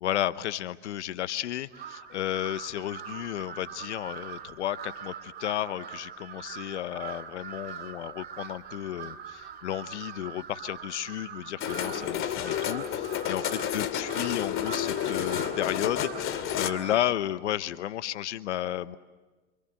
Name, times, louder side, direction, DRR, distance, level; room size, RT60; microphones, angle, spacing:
voice 1, 0.0-19.0, left 12 dB, 85° left, 14 dB, 1.1 m, -33 dB
Crow, 1.7-17.1, right 8 dB, 30° right, 2.2 m, -43 dB
sound 1, 11.6-16.7, left 10 dB, 40° left, 2.3 m, -30 dB
28.5 x 26.5 x 7.8 m, 1.2 s
hypercardioid pair, 115°, 34 cm